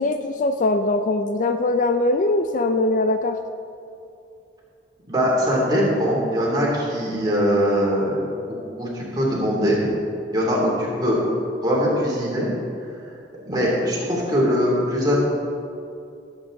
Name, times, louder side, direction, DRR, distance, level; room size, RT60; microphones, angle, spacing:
voice 1, 0.0-3.4, left 2 dB, 40° left, 7 dB, 0.4 m, -21 dB
voice 2, 5.1-8.2 8.8-9.9 10.3-11.2 11.6-12.5 13.5-15.2, equal, 20° right, -5 dB, 2.8 m, -21 dB
17.5 x 8.2 x 3.8 m, 2.6 s
head